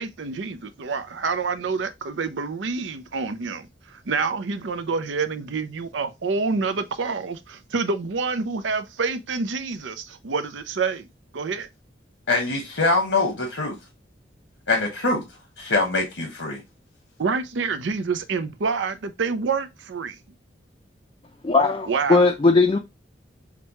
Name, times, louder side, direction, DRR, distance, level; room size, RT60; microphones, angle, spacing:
voice 1, 0.0-11.1 11.3-11.7 17.2-20.2 21.9-22.3, right 4 dB, 90° right, 0.6 m, -27 dB
voice 2, 12.3-13.8 14.7-15.2 15.6-16.6, left 3 dB, 90° left, 1.2 m, -23 dB
voice 3, 21.4-22.8, left 3 dB, 30° left, 0.4 m, -18 dB
5.9 x 2.2 x 2.9 m
head